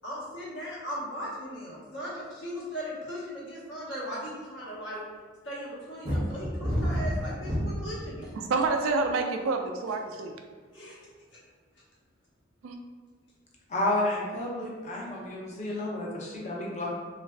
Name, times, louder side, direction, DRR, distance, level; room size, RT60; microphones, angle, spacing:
voice 1, 0.0-5.0 5.4-8.3 9.9-10.0 10.7-11.0 15.7-15.8, equal, 65° left, -7 dB, 1.0 m, -38 dB
sound 1, 6.0-8.0 8.7-9.1, equal, 25° right, 0.5 m, -28 dB
voice 2, 8.3-10.4 12.6-12.8, right 3 dB, 90° right, 4 dB, 0.3 m, -28 dB
voice 3, 13.7-16.9, left 1 dB, 35° left, -3 dB, 0.5 m, -31 dB
3.2 x 2.4 x 2.2 m, 1.5 s
head